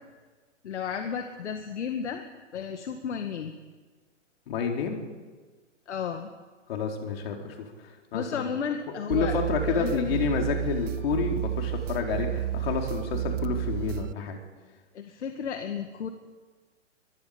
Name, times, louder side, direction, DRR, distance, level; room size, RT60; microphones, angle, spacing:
voice 1, 0.6-2.2 2.5-3.5 5.9-6.3 8.1-9.3 9.7-10.0 14.9-16.1, left 7 dB, 70° left, 6 dB, 2.0 m, -33 dB
voice 2, 4.5-5.0 6.7-8.5 9.1-14.4, left 6 dB, 50° left, 2 dB, 4.4 m, -29 dB
sound 1, 9.1-14.1, right 12 dB, 80° right, 0.5 m, -31 dB
23.5 x 22.5 x 5.3 m, 1.4 s
hypercardioid pair, 145°, 37 cm